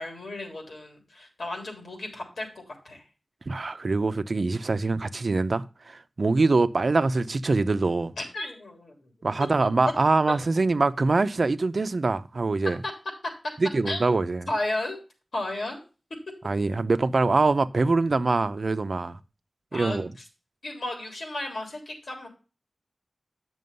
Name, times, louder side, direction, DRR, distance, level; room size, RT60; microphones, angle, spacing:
voice 1, 0.0-3.0 8.2-8.9 9.6-9.7 13.8-14.2 14.5-15.0 15.3-15.8 19.7-20.0 20.6-22.3, left 2 dB, 85° left, 3.4 m, -33 dB
voice 2, 3.5-8.1 9.2-12.8 13.6-14.5 16.4-19.2 19.7-20.1, right 3 dB, 60° right, 0.7 m, -24 dB
9.4 x 6.2 x 5.3 m
wide cardioid pair, 90°, 0 cm